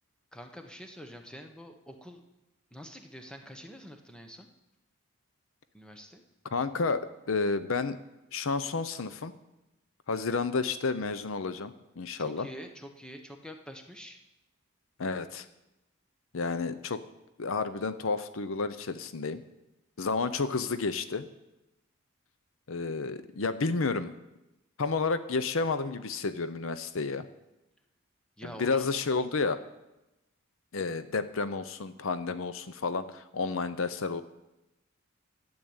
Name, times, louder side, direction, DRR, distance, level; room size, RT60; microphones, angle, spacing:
voice 1, 0.3-2.2 2.7-4.5 5.7-6.2 12.2-14.2 28.4-28.9, equal, 5° left, 5 dB, 1.1 m, -46 dB
voice 2, 6.5-8.0 8.3-9.3 10.1-12.5 15.0-15.5 16.3-17.0 17.4-19.4 20.0-21.3 22.7-24.1 24.8-27.2 28.4-29.6 30.7-34.2, left 4 dB, 65° left, 13 dB, 0.7 m, -31 dB
12.5 x 8.0 x 8.8 m, 0.96 s
head